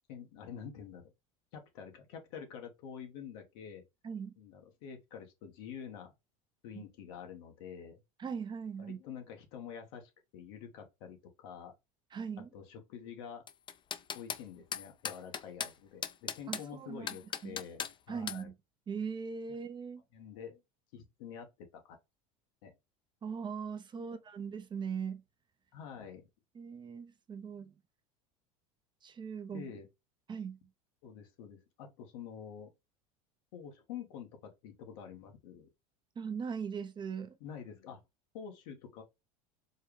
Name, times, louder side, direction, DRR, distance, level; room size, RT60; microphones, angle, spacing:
voice 1, 0.1-1.1 1.5-3.8 4.4-6.1 6.6-8.0 8.8-11.7 12.5-13.4 14.1-18.5 20.1-20.6 20.9-22.0 22.6-22.7 24.0-24.2 25.7-26.3 29.5-29.9 31.0-32.7 33.5-35.7 37.4-38.0 38.3-39.0, left 7 dB, 75° left, 1.3 m, -47 dB
voice 2, 8.2-9.0 12.1-12.5 16.5-17.2 17.4-17.6 18.1-18.5 18.9-20.0 23.2-25.2 26.5-27.7 29.0-29.7 30.3-30.6 36.2-37.4, right 6 dB, 25° right, 0.5 m, -40 dB
sound 1, 13.5-14.4 14.7-15.7 16.0-16.7 17.1-17.9 18.3-18.4, left 7 dB, 25° left, 0.5 m, -37 dB
4.5 x 2.3 x 3.2 m
supercardioid pair, 95°, 18 cm